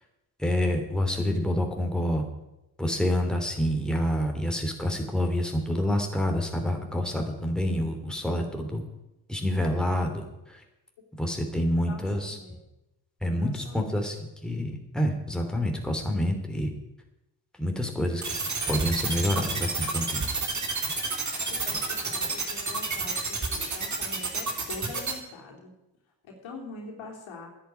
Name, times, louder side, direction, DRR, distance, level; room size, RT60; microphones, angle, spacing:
voice 1, 0.4-2.2 2.8-8.8 9.3-10.6 11.2-12.4 13.2-16.7 17.6-18.3 18.7-20.3, left 1 dB, ahead, 3 dB, 3.1 m, -27 dB
voice 2, 11.9-12.6 13.4-14.1 21.4-25.7 26.2-27.5, left 3 dB, 70° left, 0 dB, 3.4 m, -44 dB
sound 1, 18.2-25.1, right 4 dB, 35° right, 3.3 m, -29 dB
10.5 x 8.6 x 9.4 m, 0.93 s
hypercardioid pair, 45°, 48 cm